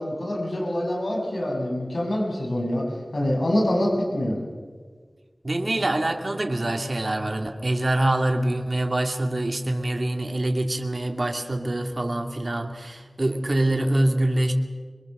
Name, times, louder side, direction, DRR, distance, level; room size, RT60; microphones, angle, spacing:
voice 1, 0.0-2.8 3.1-4.4, left 1 dB, 80° left, -1 dB, 6.3 m, -25 dB
voice 2, 5.4-14.5, right 1 dB, 55° right, 4 dB, 2.4 m, -25 dB
27.0 x 22.5 x 6.6 m, 1.5 s
wide cardioid pair, 55°, 0 cm